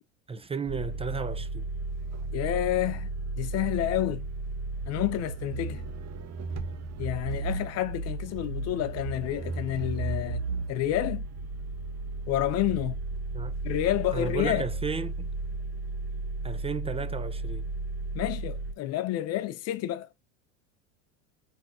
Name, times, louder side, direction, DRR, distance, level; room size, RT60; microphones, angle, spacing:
voice 1, 0.3-1.6 13.3-13.6 14.1-15.3 16.4-17.7, right 5 dB, 15° right, 0.5 m, -34 dB
sound 1, 0.7-18.7, right 3 dB, 40° right, 1.1 m, -34 dB
voice 2, 2.3-3.1 3.4-4.3 4.9-5.8 7.0-10.4 10.7-11.3 12.3-13.0 13.6-14.7 18.1-20.1, left 14 dB, 40° left, 0.5 m, -29 dB
4.5 x 4.0 x 2.4 m
hypercardioid pair, 85°, 40 cm